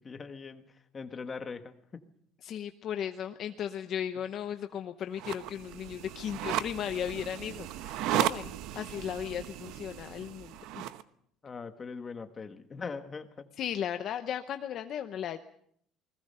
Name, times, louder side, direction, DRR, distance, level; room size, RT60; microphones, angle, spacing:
voice 1, 0.0-2.1 4.2-4.3 11.4-13.5, left 5 dB, 20° left, 7 dB, 1.4 m, -41 dB
voice 2, 2.4-10.9 13.6-15.4, left 9 dB, 40° left, 8 dB, 0.8 m, -36 dB
sound 1, 5.1-11.0, right 13 dB, 60° right, 1.0 m, -35 dB
29.0 x 21.0 x 5.6 m, 0.68 s
cardioid pair, 175°, 0 cm